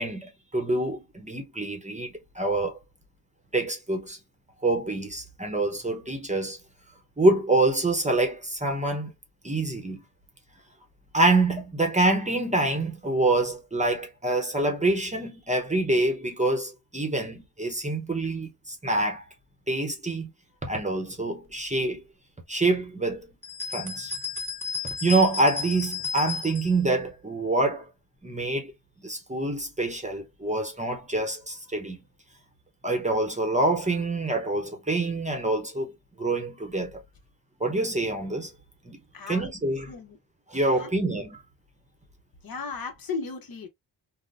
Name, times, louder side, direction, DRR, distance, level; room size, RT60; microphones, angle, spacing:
voice 1, 0.0-2.8 3.5-4.2 4.6-6.6 7.2-9.1 9.4-10.0 11.1-19.2 19.7-20.3 20.6-22.0 22.5-23.3 23.7-24.1 25.0-27.9 28.2-28.7 29.0-32.0 32.8-35.9 36.2-37.0 37.6-38.5 38.9-39.0 39.3-39.9 40.5-41.4, right 2 dB, 15° right, 0.7 m, -26 dB
sound 1, 23.4-26.8, left 5 dB, 5° left, 1.2 m, -33 dB
voice 2, 42.4-43.7, left 4 dB, 55° left, 0.9 m, -35 dB
3.7 x 2.1 x 2.5 m
wide cardioid pair, 125°, 42 cm